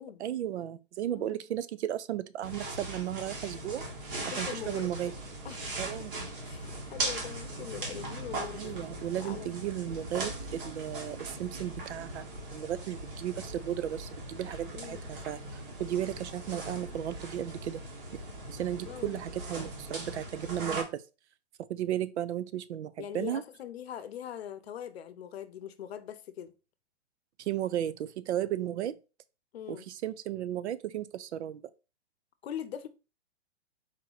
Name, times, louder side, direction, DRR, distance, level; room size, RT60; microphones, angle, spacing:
voice 1, 0.2-3.8 4.4-5.1 5.8-6.1 8.6-12.2 12.5-17.8 18.5-21.0 21.7-23.4 27.4-29.0 29.7-31.6, right 11 dB, 75° right, 0.5 m, -34 dB
sound 1, 2.4-20.8, right 2 dB, 50° right, 1.5 m, -39 dB
voice 2, 4.2-4.9 5.4-5.7 6.0-6.1 6.4-8.7 9.2-9.5 14.7-15.1 18.8-19.2 23.0-26.5 29.5-29.8 32.4-32.9, left 9 dB, 60° left, 0.7 m, -42 dB
sound 2, 7.8-13.8 14.0-14.1, right 5 dB, 20° right, 0.4 m, -54 dB
4.5 x 3.0 x 3.9 m
hypercardioid pair, 165°, 35 cm